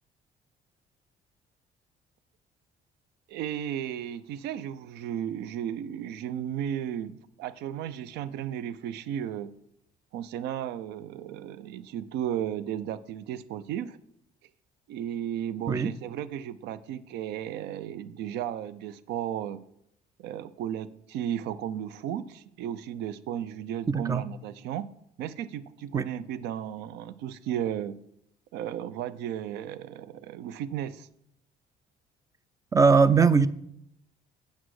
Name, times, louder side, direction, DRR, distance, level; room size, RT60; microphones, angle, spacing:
voice 1, 3.3-9.5 10.1-14.0 14.9-19.6 20.2-24.9 25.2-28.0 28.5-31.1, right 10 dB, 80° right, 17 dB, 0.4 m, -34 dB
voice 2, 23.9-24.2 25.9-26.1 32.7-33.5, right 5 dB, 20° right, 16 dB, 0.4 m, -20 dB
8.3 x 6.2 x 4.7 m, 0.75 s
cardioid pair, 110°, 17 cm